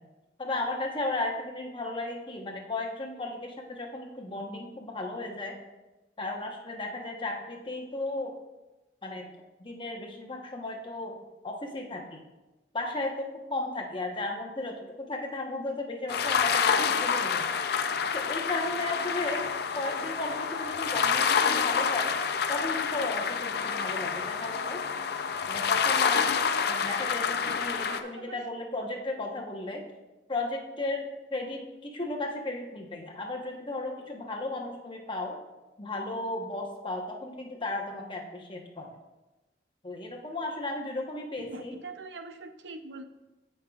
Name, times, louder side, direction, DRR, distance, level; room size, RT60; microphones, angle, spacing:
voice 1, 0.4-5.6 6.2-8.3 9.0-9.3 9.6-11.1 11.4-12.2 12.7-17.5 18.1-19.5 19.7-22.1 22.5-24.8 25.5-26.4 26.7-29.8 30.3-35.4 35.8-39.0 39.8-41.8, left 2 dB, 30° left, 1 dB, 1.0 m, -35 dB
sound 1, 16.1-28.0, left 6 dB, 65° left, 0.5 m, -28 dB
voice 2, 27.8-28.4 41.4-43.0, right 3 dB, 85° right, 7 dB, 0.6 m, -43 dB
14.5 x 5.5 x 2.4 m, 1.1 s
head